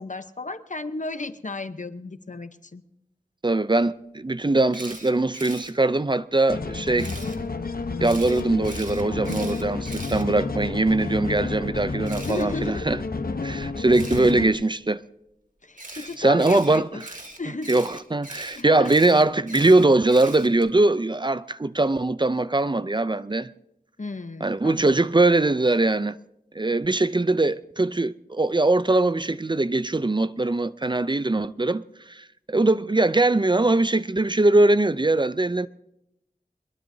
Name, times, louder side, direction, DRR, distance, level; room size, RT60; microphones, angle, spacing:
voice 1, 0.0-2.8 12.3-12.9 15.6-17.0 17.4-17.8 18.5-19.0 24.0-25.0, left 3 dB, 60° left, 0.9 m, -34 dB
voice 2, 3.4-7.1 8.0-13.0 13.4-15.0 16.2-16.9 17.7-23.5 24.4-26.2 26.6-35.7, right 2 dB, 30° right, 0.5 m, -21 dB
Camera, 4.7-5.7 7.0-7.4 8.0-10.8 12.1-12.4 13.9-14.3 15.8-20.7, right 1 dB, 60° right, 2.2 m, -41 dB
sound 1, 6.5-14.5, left 3 dB, 85° left, 0.9 m, -30 dB
22.5 x 21.5 x 2.7 m
wide cardioid pair, 45°, 15 cm